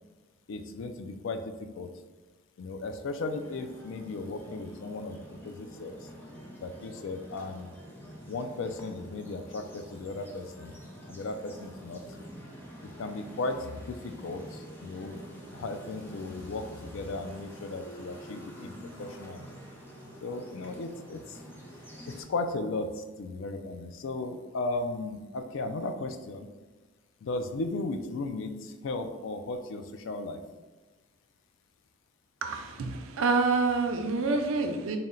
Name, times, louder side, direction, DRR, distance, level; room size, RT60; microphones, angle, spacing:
voice 1, 0.5-1.9 2.6-5.9 6.6-7.7 8.3-10.8 11.1-12.0 12.8-15.2 15.5-19.6 20.2-21.4 22.1-26.5 27.2-30.4, left 2 dB, 70° left, 8 dB, 0.4 m, -36 dB
sound 1, 3.2-22.2, equal, 10° left, 0.5 m, -47 dB
voice 2, 32.4-35.0, right 3 dB, 80° right, 4 dB, 0.5 m, -27 dB
4.2 x 2.1 x 3.7 m, 1.3 s
head